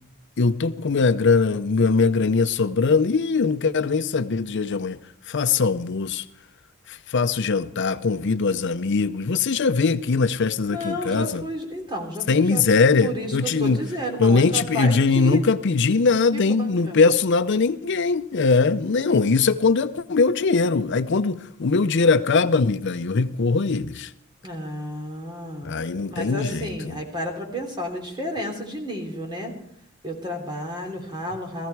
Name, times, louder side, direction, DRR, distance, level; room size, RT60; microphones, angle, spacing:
voice 1, 0.4-5.0 5.3-6.2 6.9-11.4 12.3-13.8 14.2-24.1 25.6-27.0, left 4 dB, 60° left, 0.6 m, -21 dB
voice 2, 10.7-12.6 13.0-15.4 16.3-17.0 24.4-25.8 26.1-29.6 30.0-31.7, equal, 20° right, 3.1 m, -31 dB
17.5 x 15.0 x 4.6 m
head